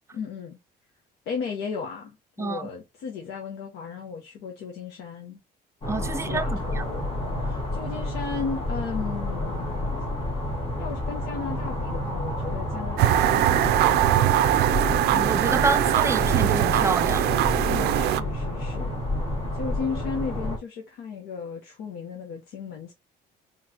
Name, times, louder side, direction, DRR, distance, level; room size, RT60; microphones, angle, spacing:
voice 1, 0.1-0.6 1.3-5.4 6.1-7.1 7.4-10.0 10.8-14.7 15.1-15.2 17.7-18.9 19.5-22.9, left 5 dB, 80° left, 1.0 m, -35 dB
voice 2, 2.4-2.7 5.9-6.8 15.1-17.3, right 4 dB, 15° right, 0.5 m, -28 dB
sound 1, 5.8-20.6, left 1 dB, 35° left, 1.8 m, -30 dB
sound 2, 13.0-18.2, right 12 dB, 75° right, 0.4 m, -21 dB
4.0 x 3.2 x 2.9 m
cardioid pair, 110°, 17 cm